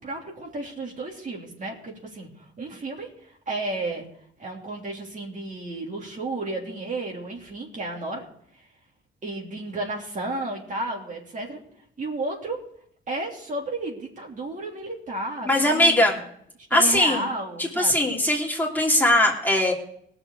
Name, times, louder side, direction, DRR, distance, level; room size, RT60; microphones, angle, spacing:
voice 1, 0.0-4.0 4.4-8.2 9.2-11.6 12.0-12.6 13.1-16.0 16.7-18.1, right 2 dB, 40° right, -1 dB, 3.2 m, -32 dB
voice 2, 15.4-16.2 16.7-17.2 17.6-19.7, left 1 dB, 10° left, -2 dB, 3.0 m, -20 dB
18.5 x 7.0 x 4.9 m, 0.68 s
cardioid pair, 90°, 20 cm